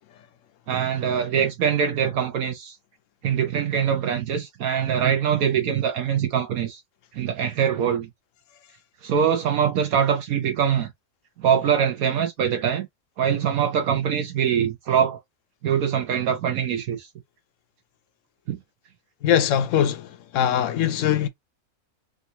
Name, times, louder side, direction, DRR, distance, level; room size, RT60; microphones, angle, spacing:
voice 1, 0.7-2.8 3.2-6.8 7.1-8.1 9.0-10.9 11.4-12.9 13.2-15.2 15.6-17.1 18.5-18.6, right 8 dB, 75° right, 1.2 m, -23 dB
voice 2, 19.2-21.3, left 10 dB, 70° left, 0.9 m, -22 dB
3.6 x 2.5 x 2.8 m
omnidirectional pair, 1.5 m